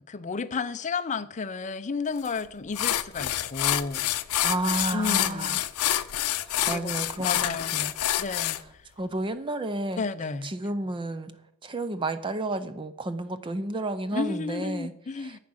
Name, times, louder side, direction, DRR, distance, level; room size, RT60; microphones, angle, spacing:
voice 1, 0.1-4.1 4.7-5.6 6.7-7.8 8.2-8.6 10.0-10.5 14.1-15.4, left 4 dB, 35° left, 0.5 m, -32 dB
sound 1, 2.2-2.4 2.7-8.6, left 13 dB, 80° left, 0.5 m, -27 dB
voice 2, 4.4-5.6 6.7-7.9 9.0-10.0 10.4-11.3 11.6-14.9 15.2-15.4, right 2 dB, 20° right, 0.5 m, -31 dB
9.8 x 8.4 x 6.3 m
head